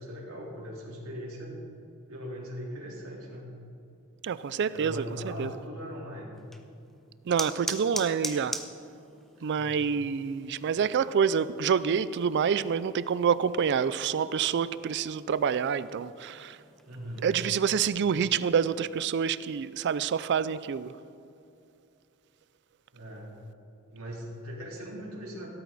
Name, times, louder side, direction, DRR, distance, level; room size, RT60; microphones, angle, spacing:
voice 1, 0.0-1.6 2.1-3.5 4.7-6.4 9.6-9.8 16.9-17.3 22.9-23.3 23.9-25.5, equal, 75° right, 3.5 m, -40 dB
voice 2, 4.2-5.5 7.3-8.6 9.4-16.6 17.2-20.9, right 7 dB, 55° right, 0.4 m, -27 dB
sound 1, 6.3-17.5, equal, ahead, 0.8 m, -43 dB
17.0 x 13.0 x 4.1 m
head